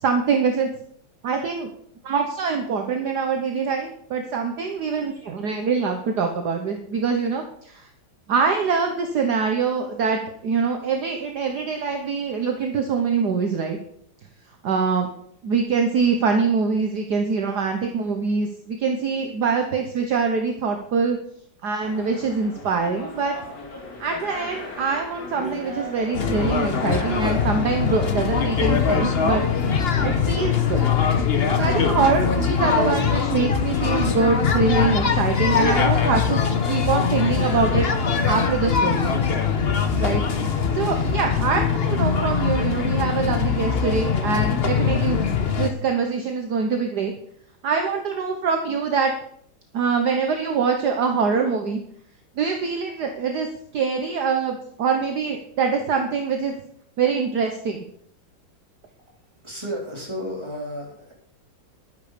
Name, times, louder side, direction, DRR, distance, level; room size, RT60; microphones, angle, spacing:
voice 1, 0.0-0.7 1.2-1.7 2.0-7.8 8.3-13.8 14.6-15.1 15.4-21.2 21.6-23.4 24.0-29.4 30.0-30.8 31.6-36.4 36.7-37.9 38.3-39.2 40.0-40.2 40.7-45.2 45.6-47.1 47.6-49.1 49.7-51.8 52.4-53.5 53.7-56.5 57.0-57.8, right 5 dB, 60° right, 4 dB, 1.6 m, -24 dB
sound 1, 21.8-34.0, left 2 dB, 55° left, 2.6 m, -38 dB
sound 2, 26.1-45.7, left 6 dB, 40° left, 1.0 m, -22 dB
voice 2, 59.4-61.1, equal, 15° right, -2 dB, 3.9 m, -32 dB
11.5 x 10.0 x 5.1 m, 0.66 s
omnidirectional pair, 2.2 m